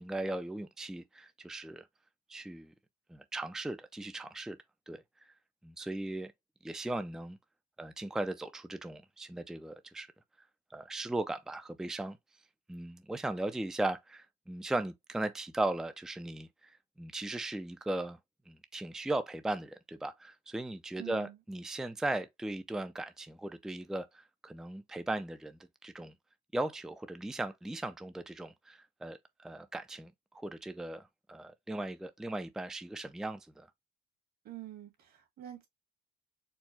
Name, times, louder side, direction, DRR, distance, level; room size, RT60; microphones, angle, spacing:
voice 1, 0.0-1.9 2.3-2.7 3.1-4.6 4.9-5.0 5.6-6.3 6.6-7.4 7.8-10.1 10.7-12.2 12.7-18.2 18.5-26.1 26.5-30.1 30.4-33.7, right 2 dB, 5° right, 0.4 m, -37 dB
voice 2, 21.0-21.4 34.4-35.7, right 13 dB, 65° right, 2.1 m, -46 dB
4.5 x 2.2 x 4.2 m
cardioid pair, 110°, 17 cm